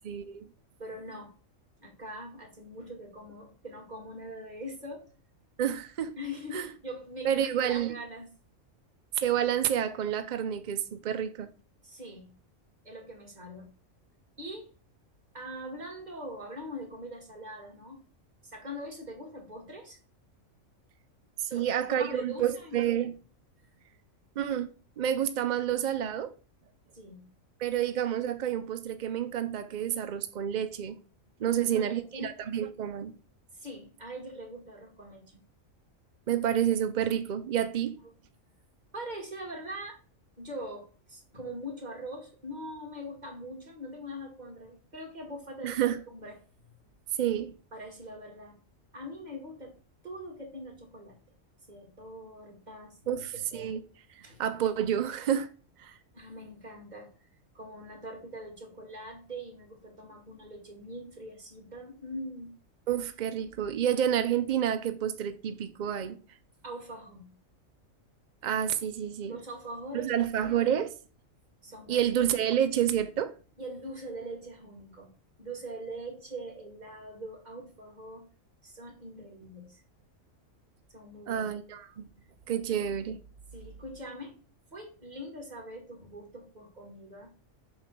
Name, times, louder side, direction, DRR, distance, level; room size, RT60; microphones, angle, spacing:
voice 1, 0.0-0.5 5.6-6.1 6.5-6.7 7.2-8.0 9.1-11.5 21.4-23.1 24.4-24.7 25.0-26.3 27.6-31.0 31.4-33.1 36.3-37.9 45.6-46.0 47.2-47.5 53.1-53.8 54.1-55.5 55.8-56.0 62.9-66.2 68.4-69.4 69.9-70.9 71.9-73.3 81.3-82.1 82.5-83.2, right 10 dB, 65° right, 0.4 m, -29 dB
voice 2, 0.8-1.3 1.8-5.1 6.2-8.3 11.8-12.3 12.8-13.7 14.4-14.7 15.3-18.0 18.4-20.0 21.4-22.8 26.9-27.3 31.5-32.3 33.5-35.4 38.9-40.0 40.4-45.8 46.1-46.4 46.6-46.7 47.7-48.6 48.9-49.8 50.0-51.2 51.7-53.3 53.5-53.7 54.2-54.4 56.1-57.3 57.5-62.5 66.6-67.4 69.2-70.3 70.6-70.8 71.6-72.0 73.6-75.1 75.4-78.2 78.6-79.8 80.9-81.5 82.7-82.8 83.5-84.4 84.7-87.3, equal, 35° right, 2.0 m, -42 dB
7.4 x 3.2 x 5.9 m
omnidirectional pair, 1.4 m